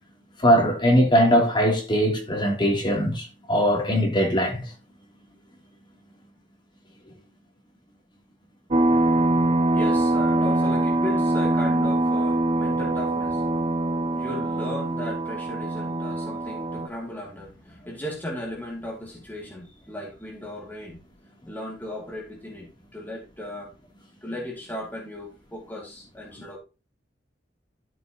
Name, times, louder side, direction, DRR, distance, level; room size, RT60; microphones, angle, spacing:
voice 1, 0.4-4.6, equal, 25° left, 3.2 m, -21 dB
sound 1, 8.7-16.9, right 2 dB, 35° right, 0.7 m, -23 dB
voice 2, 9.4-13.4 14.1-21.0 21.5-23.7 24.2-26.6, left 1 dB, 10° left, 2.6 m, -36 dB
13.0 x 6.9 x 3.0 m
head